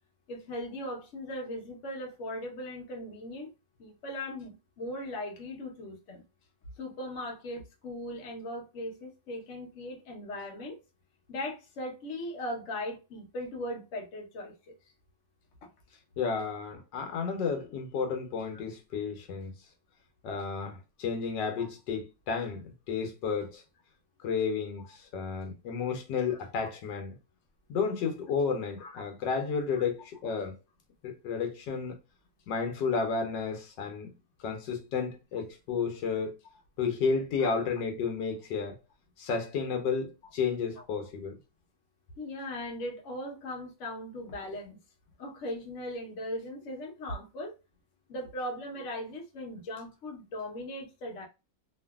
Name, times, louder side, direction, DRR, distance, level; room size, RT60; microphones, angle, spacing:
voice 1, 0.3-3.5 3.8-6.2 6.8-10.8 11.3-14.7 18.0-18.1 18.5-18.6 21.6-21.7 24.8-25.0 28.8-29.0 37.4-37.5 42.2-44.8 45.2-47.5 48.1-51.2, left 1 dB, 55° left, 0.9 m, -39 dB
voice 2, 16.2-19.5 20.2-23.6 24.2-27.2 27.7-30.5 31.0-32.0 32.5-34.1 34.4-36.3 36.8-38.7 39.2-41.3, left 5 dB, 80° left, 1.3 m, -32 dB
2.9 x 2.5 x 2.2 m
omnidirectional pair, 1.9 m